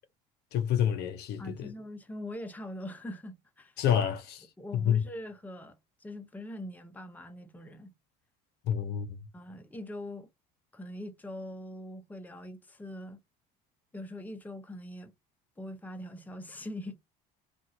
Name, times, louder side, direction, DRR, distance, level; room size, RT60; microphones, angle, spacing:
voice 1, 0.5-1.7 3.8-4.5 4.7-5.0 8.7-9.2, left 9 dB, 60° left, 0.6 m, -28 dB
voice 2, 1.4-3.7 4.6-7.9 9.3-10.3 10.7-13.2 13.9-15.1 15.6-17.0, left 1 dB, 10° left, 0.7 m, -42 dB
2.9 x 2.5 x 2.6 m
supercardioid pair, 95°, 19 cm